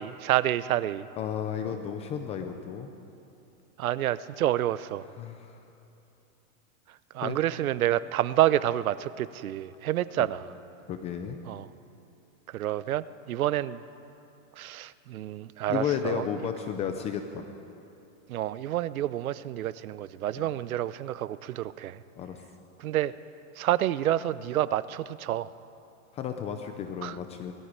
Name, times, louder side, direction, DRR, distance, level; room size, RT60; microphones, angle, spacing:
voice 1, 0.0-1.1 3.8-5.0 7.1-10.5 11.5-11.7 12.5-13.8 14.6-16.3 18.3-22.0 22.8-23.1 23.6-25.5 27.0-27.2, right 13 dB, 90° right, 17 dB, 0.8 m, -28 dB
voice 2, 1.2-2.9 5.2-5.6 7.2-7.4 10.2-10.3 10.9-11.4 15.7-17.5 20.4-20.5 22.2-22.4 26.1-27.5, left 8 dB, 15° left, 6 dB, 0.6 m, -33 dB
20.0 x 13.5 x 9.8 m, 2.8 s
supercardioid pair, 160°, 41 cm